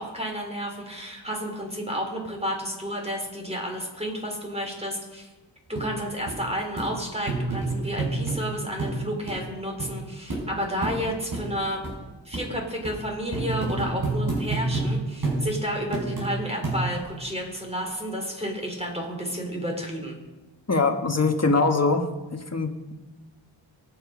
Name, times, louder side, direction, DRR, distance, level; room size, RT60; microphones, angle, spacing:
voice 1, 0.0-5.3 5.7-11.8 12.2-20.2, equal, 15° right, 1 dB, 3.9 m, -31 dB
sound 1, 5.8-5.9 6.3-6.4 6.8-6.9 7.3-8.4 8.8-9.0 9.3-9.4 9.8-9.9 10.3-10.4 10.8-11.0 11.3-11.4 11.8-11.9 12.3-12.5 12.8-13.0 13.3-14.9 15.2-15.4 15.9-16.3 16.6-17.1 17.6-17.7, right 3 dB, 50° right, 6.0 m, -28 dB
voice 2, 20.7-22.0 22.3-22.9, left 3 dB, 35° left, 5 dB, 1.7 m, -23 dB
23.5 x 9.1 x 5.1 m, 1.2 s
wide cardioid pair, 80°, 45 cm